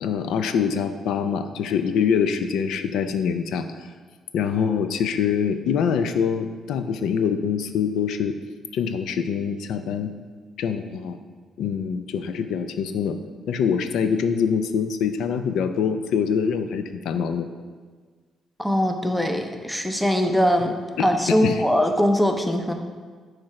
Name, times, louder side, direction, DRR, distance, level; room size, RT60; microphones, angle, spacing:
voice 1, 0.0-3.7 4.3-8.4 8.7-10.1 10.6-11.2 11.6-13.2 13.5-17.5 21.0-21.6, left 7 dB, 80° left, 9 dB, 0.4 m, -24 dB
voice 2, 18.6-22.7, equal, 5° left, 5 dB, 0.5 m, -22 dB
8.7 x 3.2 x 4.8 m, 1.5 s
cardioid pair, 135°, 0 cm